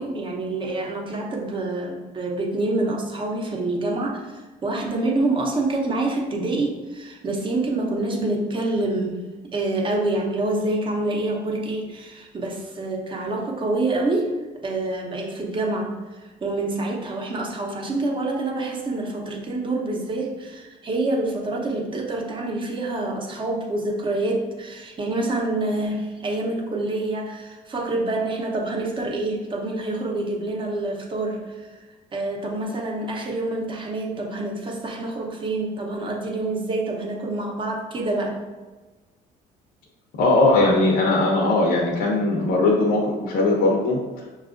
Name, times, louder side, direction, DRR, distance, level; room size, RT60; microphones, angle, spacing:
voice 1, 0.0-9.2 9.5-31.8 32.1-38.4, right 2 dB, 30° right, 0 dB, 0.7 m, -27 dB
voice 2, 40.2-44.0, left 2 dB, 65° left, -2 dB, 0.6 m, -19 dB
5.8 x 2.3 x 2.5 m, 1.3 s
cardioid pair, 110°, 17 cm